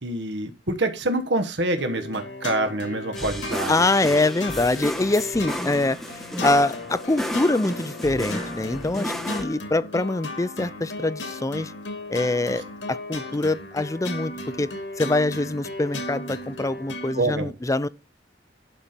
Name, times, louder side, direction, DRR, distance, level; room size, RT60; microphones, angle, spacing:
voice 1, 0.0-3.7 17.1-17.5, right 2 dB, 65° right, 1.3 m, -26 dB
sound 1, 1.8-17.2, left 2 dB, 85° left, 2.4 m, -36 dB
sound 2, 3.2-9.4, equal, ahead, 1.1 m, -33 dB
voice 2, 3.7-6.0 6.4-11.7 12.1-12.6 12.9-14.3 14.6-14.7 15.0-17.9, left 2 dB, 20° left, 0.5 m, -24 dB
11.5 x 4.4 x 6.7 m
head